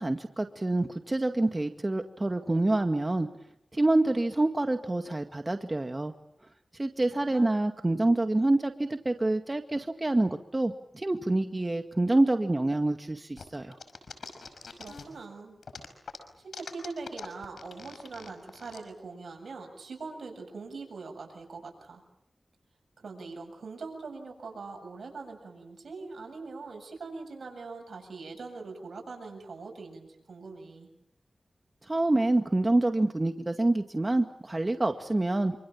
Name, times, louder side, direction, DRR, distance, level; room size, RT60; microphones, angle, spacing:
voice 1, 0.0-3.3 3.7-6.1 6.8-13.8 31.9-35.6, right 2 dB, 35° right, 6 dB, 2.1 m, -27 dB
sound 1, 13.4-15.2 15.6-18.8, left 4 dB, 85° left, 5.4 m, -43 dB
voice 2, 14.8-15.6 16.4-22.0 23.0-30.9, right 4 dB, 80° right, 2 dB, 7.7 m, -42 dB
27.0 x 26.5 x 7.3 m, 0.76 s
cardioid pair, 45°, 0 cm